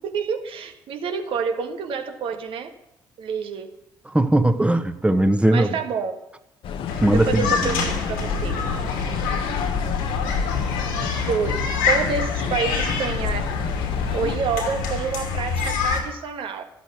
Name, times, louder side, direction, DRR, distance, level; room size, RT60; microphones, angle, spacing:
voice 1, 0.0-2.7 3.2-3.7 5.5-6.2 7.1-8.8 10.8-10.9 11.3-13.5 14.1-16.6, right 6 dB, 65° right, 6 dB, 1.8 m, -28 dB
voice 2, 4.1-5.7 7.0-7.8, right 1 dB, 10° right, 10 dB, 1.4 m, -19 dB
sound 1, 6.6-14.4, left 6 dB, 65° left, 1.1 m, -30 dB
sound 2, 6.9-16.0, left 5 dB, 90° left, 2.7 m, -26 dB
13.5 x 8.3 x 9.4 m, 0.84 s
hypercardioid pair, 55°, 10 cm